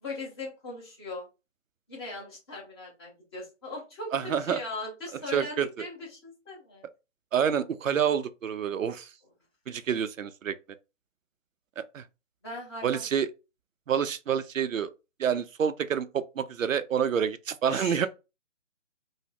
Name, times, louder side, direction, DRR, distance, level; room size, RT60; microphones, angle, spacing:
voice 1, 0.0-1.2 1.9-6.8 12.4-13.1 17.7-18.1, left 2 dB, 20° left, 1.0 m, -39 dB
voice 2, 4.1-4.6 5.3-5.7 7.3-9.1 9.7-10.5 11.8-12.0 12.8-13.3 13.9-14.9 15.2-18.1, right 8 dB, 85° right, 0.5 m, -28 dB
3.1 x 2.0 x 3.3 m
figure-of-eight pair, 150°, 38 cm